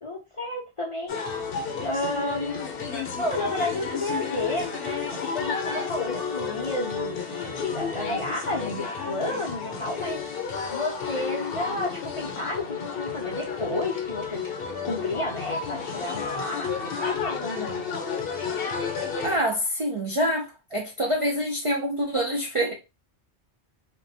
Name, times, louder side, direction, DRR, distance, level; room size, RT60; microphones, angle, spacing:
voice 1, 0.0-1.2 1.8-2.6 3.2-14.4 14.8-17.8, left 1 dB, 40° left, 0.5 m, -32 dB
sound 1, 1.1-19.4, left 5 dB, 60° left, 0.8 m, -31 dB
voice 2, 19.2-22.7, equal, 50° right, 0.4 m, -26 dB
2.6 x 2.2 x 2.6 m
omnidirectional pair, 1.1 m